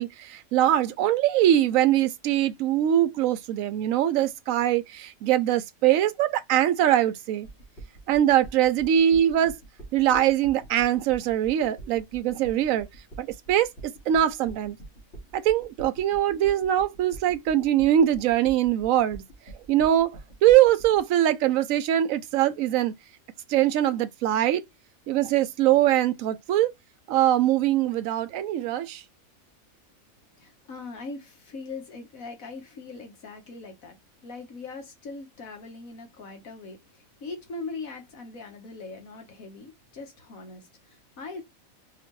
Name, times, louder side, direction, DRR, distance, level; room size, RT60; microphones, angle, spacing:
voice 1, 0.0-7.5 8.1-9.6 9.9-12.9 13.2-14.8 15.3-19.2 19.7-22.9 23.5-24.6 25.1-26.7 27.1-29.0, right 11 dB, 75° right, 1.0 m, -22 dB
sound 1, 7.4-21.0, right 2 dB, 50° left, 2.3 m, -44 dB
voice 2, 30.4-41.4, left 3 dB, 75° left, 1.7 m, -41 dB
4.9 x 2.9 x 3.1 m
omnidirectional pair, 1.5 m